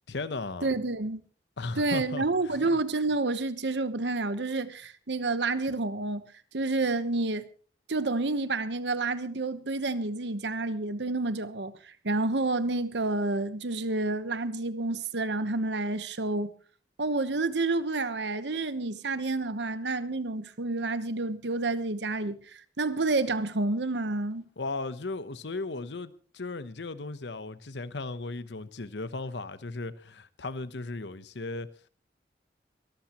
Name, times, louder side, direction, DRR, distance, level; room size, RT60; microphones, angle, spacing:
voice 1, 0.1-0.7 1.6-2.6 24.6-31.7, left 3 dB, 85° left, 0.9 m, -36 dB
voice 2, 0.6-1.2 1.8-6.2 6.5-7.5 7.9-16.5 17.0-24.4, right 2 dB, 85° right, 1.1 m, -29 dB
23.5 x 13.5 x 3.0 m
head